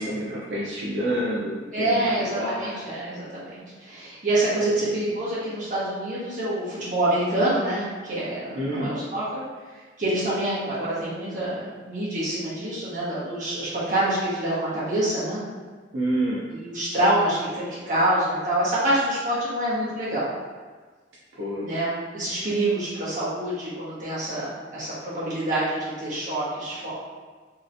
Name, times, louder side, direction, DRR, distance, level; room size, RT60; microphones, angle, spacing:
voice 1, 0.0-1.6 1.9-2.0 2.4-2.8 4.6-4.8 8.5-8.9 15.9-16.5 21.4-21.8, right 1 dB, 75° right, -8 dB, 0.6 m, -28 dB
voice 2, 1.7-9.4 10.0-15.4 16.5-20.4 21.6-26.9, right 1 dB, 45° right, -9 dB, 1.2 m, -26 dB
3.1 x 2.9 x 2.6 m, 1.4 s
head